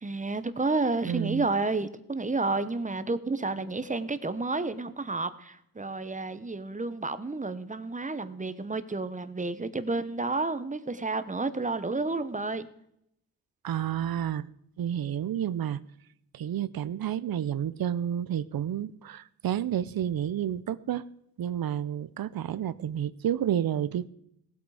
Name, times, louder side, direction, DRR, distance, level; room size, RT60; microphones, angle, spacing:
voice 1, 0.0-12.7, right 3 dB, 20° right, 1.0 m, -30 dB
voice 2, 1.1-1.5 13.6-14.5 14.8-15.8 16.3-21.0 21.4-24.1, right 10 dB, 75° right, 0.7 m, -30 dB
18.0 x 8.3 x 4.9 m
cardioid pair, 90°, 36 cm